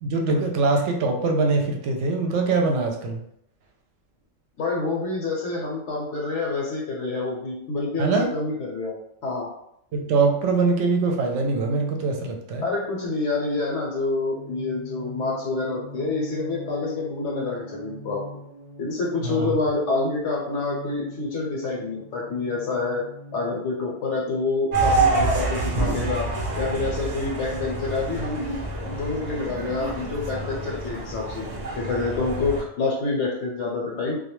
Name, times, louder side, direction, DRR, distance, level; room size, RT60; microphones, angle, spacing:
voice 1, 0.0-3.2 8.0-8.3 9.9-12.7 19.2-19.6, right 3 dB, 70° right, 2 dB, 0.9 m, -23 dB
voice 2, 4.6-8.9 9.2-9.5 12.6-18.2 18.8-23.0 23.3-28.6 28.9-31.5 31.7-34.2, left 3 dB, 70° left, -2 dB, 0.9 m, -27 dB
sound 1, 14.3-26.3, equal, 25° left, 0.6 m, -42 dB
sound 2, 24.7-32.6, right 3 dB, 50° right, 0.5 m, -27 dB
2.3 x 2.2 x 2.9 m, 0.73 s
omnidirectional pair, 1.3 m